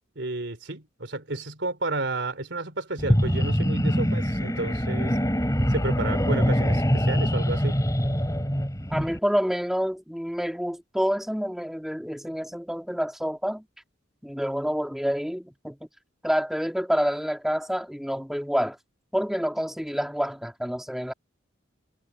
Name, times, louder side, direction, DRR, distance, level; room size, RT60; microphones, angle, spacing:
voice 1, 0.1-5.2 5.7-7.8, right 2 dB, 65° right, 3.3 m, -31 dB
sound 1, 3.0-9.2, equal, 15° left, 6.5 m, -24 dB
voice 2, 8.9-13.6 14.2-15.8 16.2-18.8 19.1-21.1, equal, ahead, 1.9 m, -28 dB
head